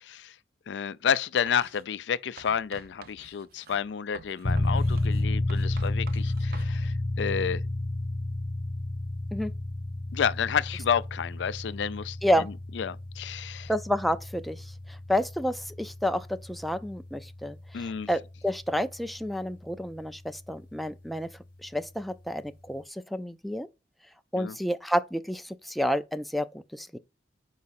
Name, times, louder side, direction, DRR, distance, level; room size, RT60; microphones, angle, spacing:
voice 1, 0.7-7.6 10.1-12.2 12.8-13.7 17.7-18.1 24.4-24.6, left 7 dB, 85° left, 0.4 m, -30 dB
Writing, 1.5-1.8 2.4-6.8, right 5 dB, 55° right, 0.6 m, -50 dB
sound 1, 4.4-18.9, left 2 dB, 55° left, 1.0 m, -31 dB
voice 2, 13.7-14.6 14.9-21.3 21.6-23.7 24.3-27.0, equal, ahead, 0.3 m, -30 dB
5.6 x 4.8 x 4.1 m
head